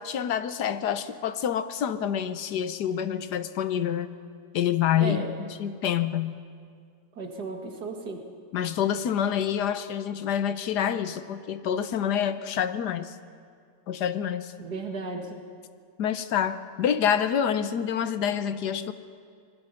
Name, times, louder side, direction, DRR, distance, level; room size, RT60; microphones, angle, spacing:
voice 1, 0.0-4.1 4.5-6.4 8.5-13.1 13.9-14.5 16.0-18.9, left 9 dB, 85° left, 11 dB, 1.5 m, -27 dB
voice 2, 7.2-8.2 14.6-15.4, right 3 dB, 80° right, 3 dB, 2.6 m, -34 dB
25.0 x 21.0 x 5.7 m, 2.2 s
omnidirectional pair, 1.7 m